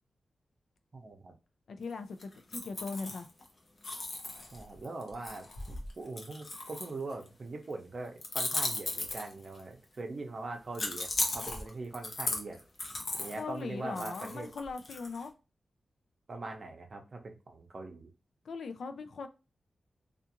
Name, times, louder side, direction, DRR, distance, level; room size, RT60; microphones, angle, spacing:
voice 1, 0.9-1.3 4.5-12.6 13.2-14.5 16.3-18.1, right 3 dB, 50° right, 0.7 m, -42 dB
voice 2, 1.7-3.3 4.4-4.5 13.4-15.3 18.4-19.3, left 4 dB, 85° left, 0.4 m, -40 dB
sound 1, 2.2-3.5 3.8-7.3 8.2-9.6 10.7-13.4 14.0-15.2, left 2 dB, 50° left, 0.7 m, -36 dB
2.4 x 2.4 x 2.8 m
wide cardioid pair, 105°, 0 cm